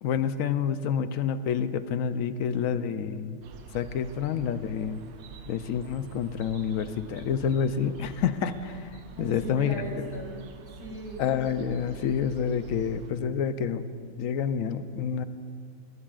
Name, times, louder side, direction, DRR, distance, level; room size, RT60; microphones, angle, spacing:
voice 1, 0.0-3.4 3.7-5.0 5.5-9.8 11.2-13.8 14.2-15.2, left 7 dB, 75° left, 11 dB, 1.0 m, -28 dB
sound 1, 3.4-13.1, right 6 dB, 85° right, 1.2 m, -47 dB
voice 2, 9.1-11.3, equal, 35° left, -4 dB, 3.6 m, -38 dB
20.5 x 16.0 x 2.4 m, 2.3 s
omnidirectional pair, 1.5 m